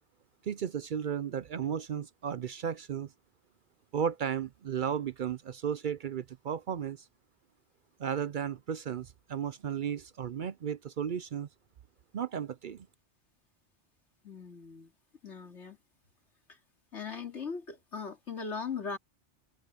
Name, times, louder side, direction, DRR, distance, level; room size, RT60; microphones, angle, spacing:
voice 1, 0.4-3.1 3.9-7.0 8.0-11.5 12.1-12.9, right 8 dB, 55° right, 0.6 m, -34 dB
voice 2, 14.2-14.9 15.2-15.8 16.5-16.6 16.9-19.0, left 5 dB, 90° left, 3.0 m, -39 dB
omnidirectional pair, 1.2 m